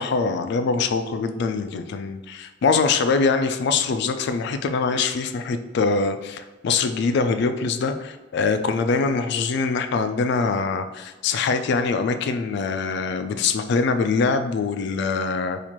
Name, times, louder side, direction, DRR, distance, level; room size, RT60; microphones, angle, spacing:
voice 1, 0.0-15.6, left 4 dB, 60° left, 8 dB, 0.3 m, -23 dB
2.9 x 2.4 x 4.3 m, 1.2 s
head